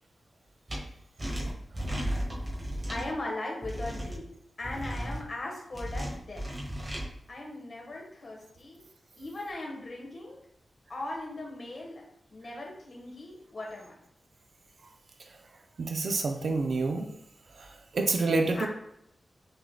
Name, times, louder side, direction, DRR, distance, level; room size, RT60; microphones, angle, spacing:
sound 1, 0.7-0.8 1.2-3.1 3.6-4.2 4.6-5.2 5.7-7.0, equal, 25° right, 1.4 m, -34 dB
voice 1, 2.9-4.2 4.6-6.4 7.3-8.8 9.2-10.4 10.9-12.1 12.3-13.9 18.5-18.7, left 2 dB, 45° left, -2 dB, 1.3 m, -38 dB
voice 2, 15.8-17.1 17.6-18.7, right 3 dB, 60° right, 4 dB, 0.5 m, -28 dB
6.5 x 3.7 x 2.2 m, 0.78 s
wide cardioid pair, 140°, 0 cm